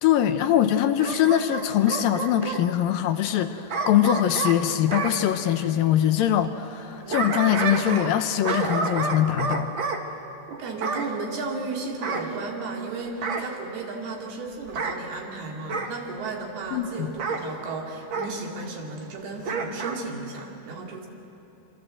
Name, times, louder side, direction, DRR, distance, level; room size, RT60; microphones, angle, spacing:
voice 1, 0.0-9.7 16.7-17.1, left 11 dB, 75° left, 9 dB, 2.4 m, -22 dB
Bark / Growling, 1.0-2.6 3.7-5.2 6.8-8.2 8.4-10.0 10.8-11.1 12.0-12.8 13.2-13.5 14.6-15.0 15.7-16.0 17.2-17.4 18.1-18.3 19.4-20.0 20.4-20.5, right 4 dB, 50° right, 1.5 m, -29 dB
voice 2, 10.5-21.1, right 3 dB, 80° right, 0 dB, 4.6 m, -34 dB
26.5 x 25.0 x 7.8 m, 2.9 s
omnidirectional pair, 4.4 m